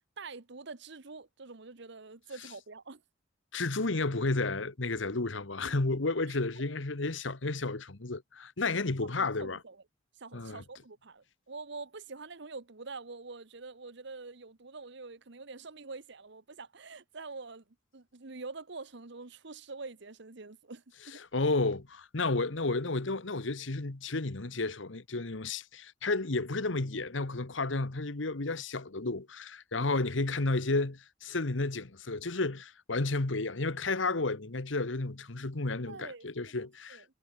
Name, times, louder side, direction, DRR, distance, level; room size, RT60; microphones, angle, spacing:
voice 1, 0.2-3.0 6.3-6.4 9.2-9.8 10.2-17.6 17.9-21.2 29.8-30.0 35.9-37.0, right 3 dB, 65° right, 1.3 m, -46 dB
voice 2, 3.5-9.6 10.3-10.6 21.3-37.0, left 3 dB, 75° left, 1.4 m, -32 dB
head